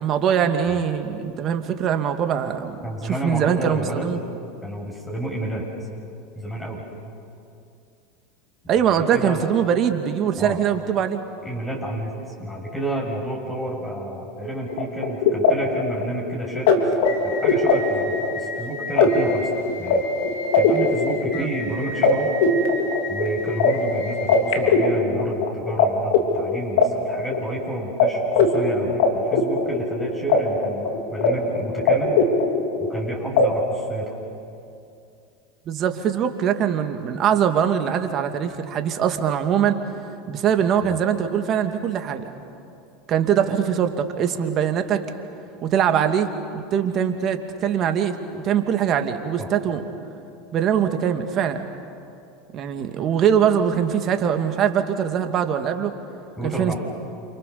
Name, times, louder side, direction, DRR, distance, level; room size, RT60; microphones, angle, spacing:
voice 1, 0.0-2.8 3.0-4.2 8.7-11.2 21.3-21.5 35.7-39.8 40.3-42.3 43.1-45.0 45.6-49.8 50.5-51.6 52.5-55.9 56.4-56.7, right 8 dB, 45° right, 6 dB, 2.6 m, -22 dB
voice 2, 2.8-4.1 4.6-5.6 6.4-6.8 8.7-9.4 10.4-10.6 11.4-12.1 12.4-16.7 17.2-19.5 19.8-22.3 23.1-32.2 32.8-34.2 40.9-41.0 49.4-49.5 56.4-56.8, right 1 dB, 10° left, -2 dB, 7.2 m, -30 dB
sound 1, 14.7-25.8 26.1-27.6 28.0-28.1 28.3-30.4 30.6-31.3 31.6-33.0 33.4-33.5, left 4 dB, 70° left, 3.5 m, -20 dB
29.0 x 28.0 x 7.1 m, 2.5 s
hypercardioid pair, 90°, 0 cm